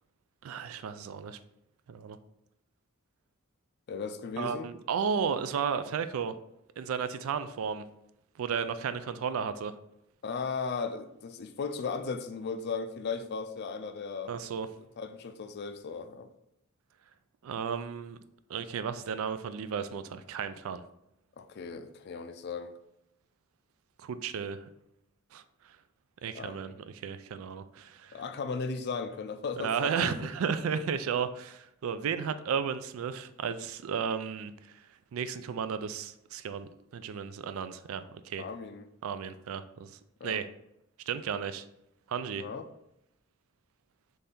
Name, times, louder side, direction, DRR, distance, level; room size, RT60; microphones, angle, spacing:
voice 1, 0.4-1.4 1.9-2.2 4.4-6.4 6.8-7.8 8.4-9.7 14.3-14.7 17.4-18.2 18.5-20.8 24.0-24.7 25.3-25.4 26.2-26.8 27.0-28.2 29.6-34.8 35.1-38.5 39.0-40.5 41.1-41.6 42.1-42.5, right 6 dB, 75° right, 12 dB, 0.3 m, -34 dB
voice 2, 3.9-4.7 10.2-14.3 15.0-16.3 21.4-22.7 26.3-26.6 28.1-30.3 38.4-38.9 40.2-40.4 42.4-42.7, left 5 dB, 50° left, 9 dB, 0.4 m, -36 dB
4.1 x 3.3 x 3.6 m, 0.82 s
head